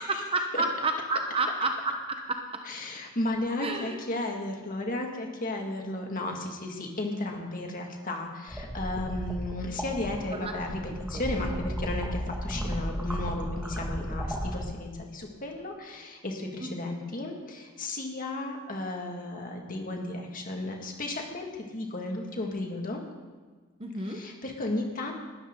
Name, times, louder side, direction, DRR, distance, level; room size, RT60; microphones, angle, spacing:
voice 1, 0.0-2.4 3.6-4.0 10.3-10.5 16.6-16.7 23.8-24.2, right 2 dB, 25° right, 4 dB, 1.0 m, -30 dB
voice 2, 2.7-23.0 24.1-25.1, left 2 dB, 40° left, 1 dB, 2.0 m, -34 dB
sound 1, 8.5-14.6, equal, 5° right, 1.8 m, -34 dB
19.5 x 12.5 x 3.8 m, 1.4 s
head